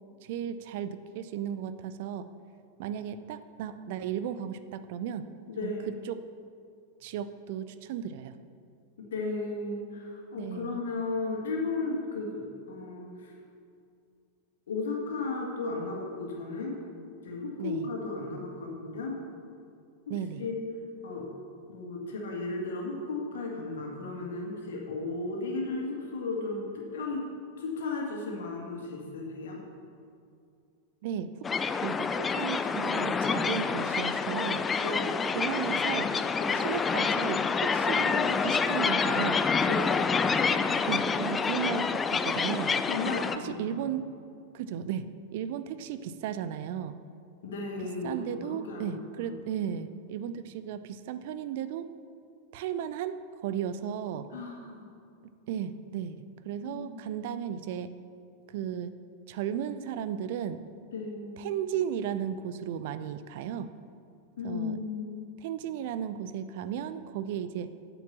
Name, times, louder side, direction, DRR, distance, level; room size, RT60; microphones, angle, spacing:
voice 1, 0.2-2.3 2.8-5.3 5.6-5.7 6.1-6.2 7.0-8.3 10.4-10.8 17.6-17.9 20.1-20.4 31.0-31.3 31.8-34.6 35.3-36.1 36.5-39.4 40.9-42.8 43.4-44.0 44.5-47.0 48.0-51.9 52.5-53.2 53.4-54.3 55.5-56.2 56.4-57.9 58.5-58.9 59.3-60.6 61.4-63.7 64.4-64.8 65.4-67.7, right 9 dB, 50° right, 12 dB, 0.5 m, -35 dB
voice 2, 5.5-6.0 9.1-13.3 14.7-16.8 17.2-19.2 20.1-20.6 21.0-21.3 21.7-27.2 27.6-29.6 34.8-35.2 36.4-36.7 37.6-37.8 39.6-40.0 42.8-43.7 47.4-49.4 54.3-54.8 56.6-57.0 60.9-61.5 64.4-65.3, left 3 dB, 60° left, -1 dB, 2.1 m, -35 dB
sound 1, 31.4-43.4, left 5 dB, 20° left, 0.4 m, -27 dB
9.4 x 7.0 x 7.3 m, 2.4 s
figure-of-eight pair, 90°, 0 cm